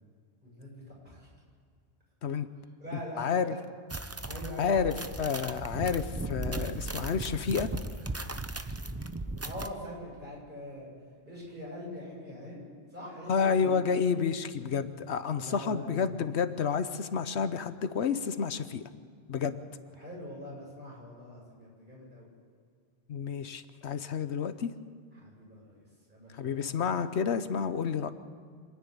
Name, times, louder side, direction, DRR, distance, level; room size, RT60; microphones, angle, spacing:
voice 1, 0.4-1.3 2.8-3.3 4.3-4.9 9.4-10.9 11.2-13.8 15.4-16.2 19.9-22.3 25.1-25.8 26.1-26.8, left 1 dB, 45° right, -4 dB, 8.1 m, -43 dB
voice 2, 3.2-3.5 4.6-7.7 13.3-18.8 19.3-19.6 23.1-24.7 26.4-28.1, left 6 dB, 75° left, 11 dB, 1.1 m, -30 dB
sound 1, 3.9-9.7, right 2 dB, 15° right, 0.6 m, -37 dB
26.5 x 10.0 x 9.9 m, 2.1 s
omnidirectional pair, 1.1 m